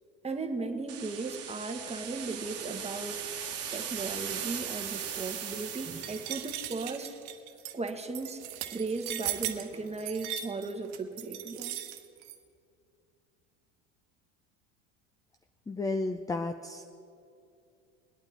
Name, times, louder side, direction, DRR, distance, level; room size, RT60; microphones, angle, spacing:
voice 1, 0.2-7.1 7.7-11.8, right 3 dB, 15° right, 5 dB, 1.4 m, -37 dB
sound 1, 0.9-6.6, right 8 dB, 40° right, 1.5 m, -38 dB
sound 2, 6.0-12.4, right 12 dB, 75° right, 1.1 m, -38 dB
voice 2, 15.7-16.8, left 2 dB, 10° left, 8 dB, 0.5 m, -32 dB
22.0 x 8.8 x 4.3 m, 2.4 s
hypercardioid pair, 90°, 37 cm